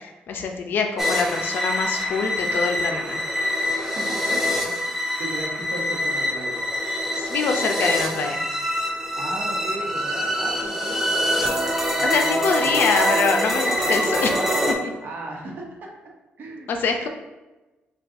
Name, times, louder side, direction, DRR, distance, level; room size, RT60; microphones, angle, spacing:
voice 1, 0.0-3.2 7.2-8.4 12.0-14.3 14.7-14.9 16.7-17.1, left 4 dB, 60° left, 4 dB, 0.5 m, -24 dB
sound 1, 1.0-14.7, left 1 dB, 10° right, 0.5 m, -25 dB
voice 2, 3.9-4.7 5.2-6.6 9.1-11.5 11.9-12.8 15.0-15.9 16.4-16.7, right 2 dB, 55° right, -1 dB, 1.0 m, -36 dB
5.3 x 2.3 x 2.6 m, 1.1 s
cardioid pair, 115°, 4 cm